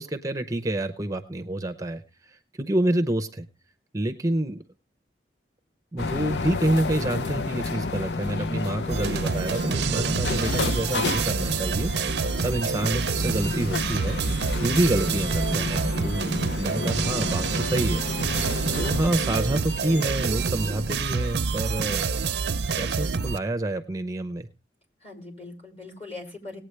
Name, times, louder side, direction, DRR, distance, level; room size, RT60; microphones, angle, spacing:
voice 1, 0.0-3.5 3.9-4.6 5.9-18.4 18.7-22.0 22.7-24.5, right 1 dB, 20° right, 9 dB, 0.6 m, -28 dB
sound 1, 6.0-20.6, left 3 dB, 70° left, 0.6 m, -31 dB
sound 2, 8.9-23.4, right 5 dB, 70° right, 0.5 m, -27 dB
voice 2, 25.0-26.6, left 2 dB, 35° left, 1 dB, 4.7 m, -41 dB
19.0 x 8.8 x 3.3 m, 0.31 s
head